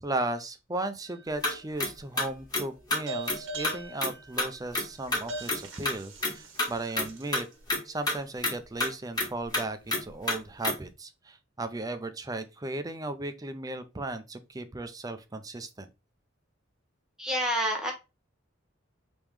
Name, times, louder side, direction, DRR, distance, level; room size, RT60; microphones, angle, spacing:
voice 1, 0.0-7.5 7.8-15.9, right 2 dB, 20° right, 0.5 m, -36 dB
sound 1, 1.1-1.7 3.1-7.5, right 2 dB, 75° right, 1.2 m, -41 dB
sound 2, 1.4-1.5 1.8-1.9 2.2-2.6 2.9-3.0 3.3-3.4 3.6-3.7 4.0-4.1 4.4-4.5 4.7-4.8 5.1-5.6 5.9-6.0 6.2-6.3 6.6-6.7 6.9-7.1 7.3-7.4 7.7-7.8 8.1-8.2 8.4-8.5 8.8-8.9 9.2-9.3 9.5-9.6 9.9-10.0 10.3-10.4 10.6-10.7, left 2 dB, 20° left, 1.4 m, -27 dB
voice 2, 17.2-17.9, equal, 5° right, 1.1 m, -28 dB
3.5 x 3.1 x 4.7 m
head